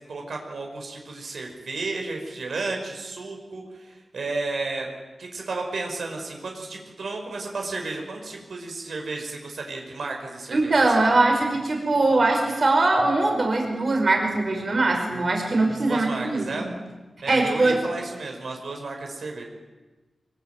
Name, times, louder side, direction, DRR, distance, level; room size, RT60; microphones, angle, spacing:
voice 1, 0.0-4.9 5.2-10.7 15.8-16.7 17.2-19.4, right 3 dB, 75° right, 2 dB, 5.7 m, -33 dB
voice 2, 10.5-16.7 17.3-17.8, right 2 dB, 45° right, 2 dB, 5.7 m, -21 dB
25.0 x 23.5 x 9.4 m, 1.2 s
wide cardioid pair, 140°, 0 cm